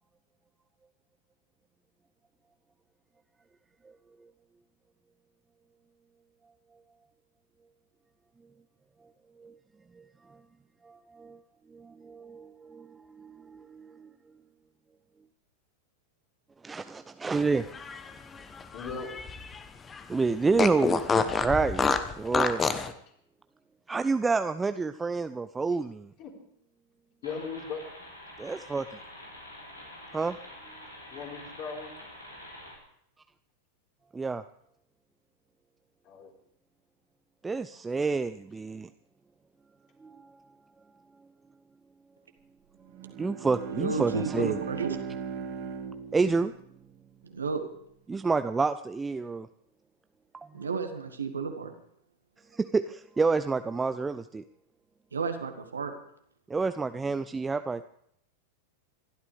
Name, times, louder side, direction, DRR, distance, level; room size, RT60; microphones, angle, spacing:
voice 1, 10.8-11.4 11.7-14.1 16.6-17.7 20.1-22.7 23.9-26.1 28.4-28.9 30.1-30.4 34.1-34.4 37.4-38.9 40.0-40.3 43.2-44.6 46.1-46.5 48.1-49.5 50.3-50.5 52.5-54.4 56.5-57.8, right 4 dB, 10° right, 11 dB, 0.5 m, -29 dB
Fart, 17.6-19.6 19.9-20.0 20.6-22.9, left 5 dB, 20° left, 1.1 m, -28 dB
voice 2, 18.7-19.1 26.2-26.3 27.2-27.9 31.1-31.9 36.0-36.3, left 5 dB, 40° left, -1 dB, 4.3 m, -38 dB
sound 1, 27.2-32.8, left 1 dB, 85° left, 4.2 m, -47 dB
Bowed string instrument, 42.9-47.5, right 6 dB, 45° right, 2.6 m, -39 dB
voice 3, 43.7-45.2 47.2-47.6 50.5-51.7 55.1-55.9, right 5 dB, 75° right, 6 dB, 1.8 m, -32 dB
27.0 x 12.5 x 3.5 m, 0.70 s
figure-of-eight pair, 90°, 0 cm